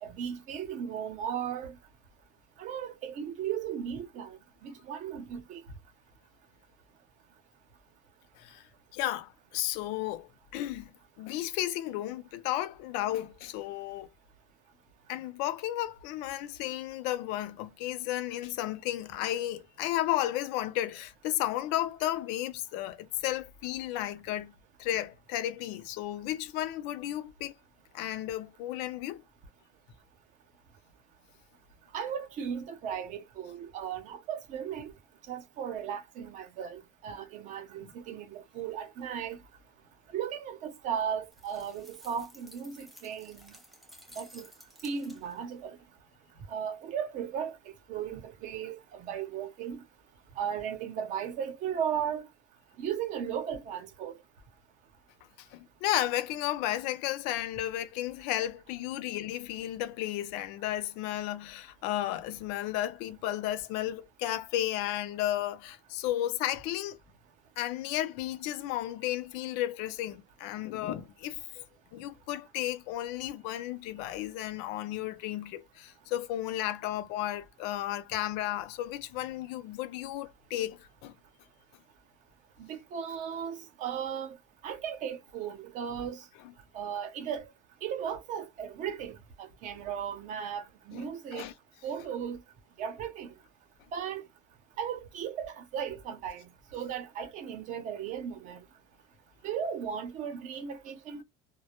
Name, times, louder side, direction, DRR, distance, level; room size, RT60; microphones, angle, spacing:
voice 1, 0.0-1.8 2.6-5.6 31.9-34.9 35.3-39.4 40.1-43.5 44.2-44.5 44.8-45.8 46.5-47.6 47.9-49.8 50.4-52.3 52.8-54.2 82.6-84.4 84.6-86.2 86.7-87.4 87.8-91.5 91.8-92.4 92.8-93.4 93.9-94.3 94.8-98.6 99.4-101.2, right 8 dB, 45° right, 0.7 m, -36 dB
voice 2, 8.9-10.9 11.2-14.1 15.1-24.5 24.8-27.5 27.9-29.2 55.5-67.0 67.6-71.6 71.9-81.1 90.9-91.5, left 13 dB, 65° left, 0.5 m, -33 dB
sound 1, 41.3-45.5, equal, ahead, 0.5 m, -55 dB
2.1 x 2.0 x 2.9 m
cardioid pair, 170°, 18 cm